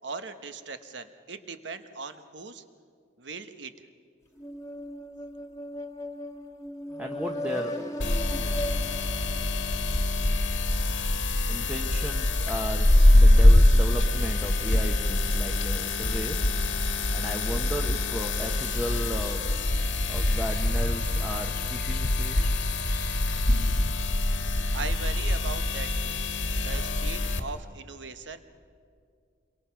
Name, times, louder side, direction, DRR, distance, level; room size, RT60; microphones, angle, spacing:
voice 1, 0.0-2.6 3.2-3.7 24.7-26.2 26.6-28.4, right 4 dB, 70° right, 9 dB, 1.2 m, -39 dB
sound 1, 4.4-10.2, equal, 15° left, 1.5 m, -37 dB
voice 2, 7.0-7.8 11.5-16.5 17.1-19.5 20.1-22.5, equal, 10° right, 2 dB, 1.0 m, -35 dB
sound 2, 8.0-27.4, left 1 dB, 80° left, 1.6 m, -24 dB
sound 3, 14.3-17.0 17.5-18.4 18.7-24.5, left 1 dB, 50° left, 0.7 m, -40 dB
27.5 x 23.0 x 5.8 m, 2.3 s
head